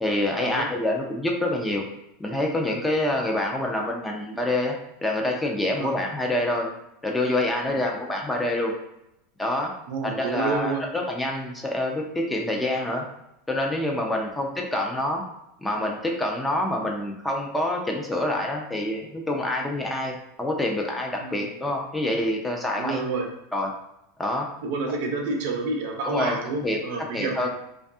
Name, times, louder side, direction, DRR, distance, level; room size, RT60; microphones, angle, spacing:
voice 1, 0.0-1.9 2.2-4.8 5.0-6.7 7.0-8.7 9.4-9.7 10.0-13.1 13.5-15.2 15.6-23.0 23.5-23.7 24.2-24.5 26.0-26.4 26.6-26.8 27.1-27.5, left 1 dB, 10° left, 0 dB, 0.4 m, -26 dB
voice 2, 9.9-10.8 19.6-19.7 21.2-21.5 22.8-23.3 24.6-27.5, right 3 dB, 65° right, 2 dB, 0.5 m, -29 dB
2.5 x 2.2 x 2.5 m, 0.83 s
supercardioid pair, 140°, 0 cm